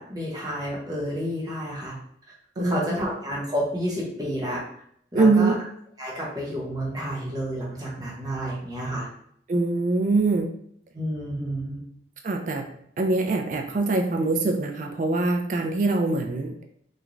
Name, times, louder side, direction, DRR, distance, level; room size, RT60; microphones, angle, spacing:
voice 1, 0.0-1.9 2.6-4.6 5.1-5.5 6.0-9.1 10.9-11.8, equal, 20° right, -5 dB, 0.8 m, -30 dB
voice 2, 2.6-3.0 5.1-5.5 9.5-10.5 12.2-12.6 13.0-16.6, right 3 dB, 45° right, 3 dB, 0.3 m, -23 dB
3.0 x 2.2 x 2.4 m, 0.68 s
head